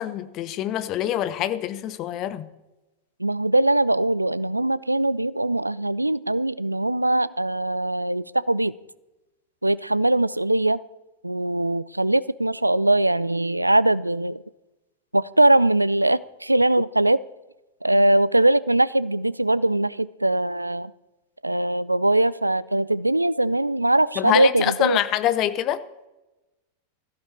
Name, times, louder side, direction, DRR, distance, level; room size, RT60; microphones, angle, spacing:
voice 1, 0.0-2.5 24.2-25.8, left 12 dB, 35° left, 14 dB, 0.8 m, -25 dB
voice 2, 3.2-8.7 9.6-10.8 11.2-14.4 15.1-17.2 17.8-20.9 21.4-25.0, right 1 dB, 85° right, 20 dB, 0.4 m, -21 dB
16.5 x 14.5 x 4.3 m, 1.0 s
figure-of-eight pair, 90°, 0 cm